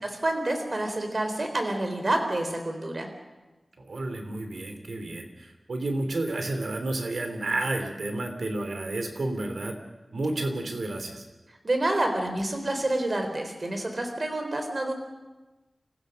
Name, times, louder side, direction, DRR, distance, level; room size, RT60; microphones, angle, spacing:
voice 1, 0.0-3.1 11.6-14.9, right 1 dB, 45° right, 5 dB, 3.9 m, -28 dB
voice 2, 3.8-9.8 10.1-11.2, right 2 dB, 85° right, 5 dB, 3.2 m, -31 dB
28.0 x 15.0 x 6.5 m, 1.2 s
wide cardioid pair, 90°, 0 cm